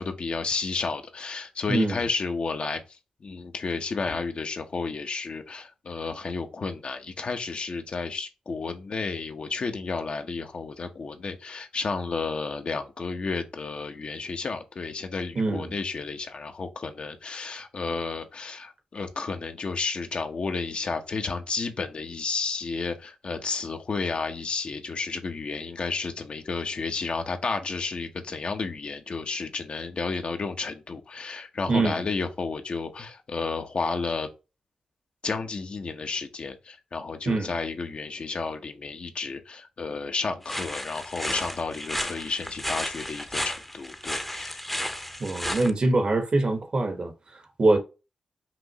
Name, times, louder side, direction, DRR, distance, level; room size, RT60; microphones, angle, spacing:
voice 1, 0.0-2.8 3.2-34.3 35.2-44.6, left 4 dB, 60° left, 0.9 m, -32 dB
voice 2, 1.7-2.1 15.3-15.7 31.7-32.0 37.2-37.5 45.2-47.8, right 2 dB, 50° right, 1.3 m, -24 dB
sound 1, 40.4-45.7, equal, 5° left, 0.8 m, -33 dB
5.9 x 2.5 x 2.9 m
cardioid pair, 50°, 2 cm